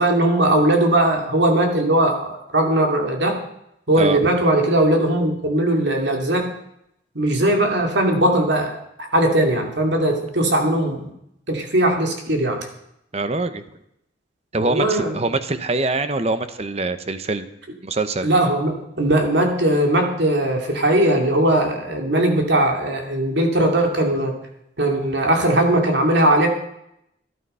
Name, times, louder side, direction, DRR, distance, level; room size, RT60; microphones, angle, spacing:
voice 1, 0.0-3.4 3.9-6.5 7.1-11.1 11.5-12.7 14.6-15.2 18.2-24.3 24.8-26.5, right 1 dB, 70° right, 3 dB, 2.7 m, -19 dB
voice 2, 4.0-4.3 13.1-13.6 14.5-17.5 17.8-18.3, right 3 dB, 35° right, 11 dB, 0.9 m, -24 dB
13.0 x 11.5 x 5.6 m, 0.79 s
head